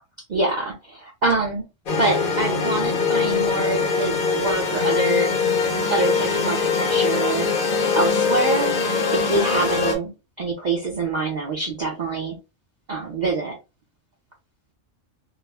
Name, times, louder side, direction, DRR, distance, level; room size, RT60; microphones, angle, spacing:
voice 1, 0.3-1.6 2.0-5.3 5.9-7.5 7.9-8.7 9.1-12.4 12.9-13.5, right 3 dB, 50° right, -2 dB, 0.6 m, -25 dB
sound 1, 1.9-10.0, left 5 dB, 55° left, 0.7 m, -22 dB
2.3 x 2.0 x 3.3 m, 0.27 s
omnidirectional pair, 1.3 m